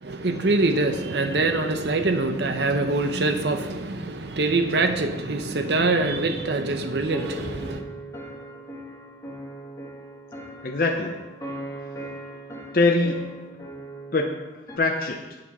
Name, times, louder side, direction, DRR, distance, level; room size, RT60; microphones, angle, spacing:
voice 1, 0.0-7.8, right 2 dB, 65° right, 0.8 m, -24 dB
sound 1, 7.1-14.8, right 1 dB, 20° left, 1.4 m, -39 dB
voice 2, 10.6-11.2 12.7-13.5 14.1-15.4, left 2 dB, 50° left, 0.7 m, -24 dB
8.6 x 7.6 x 5.4 m
head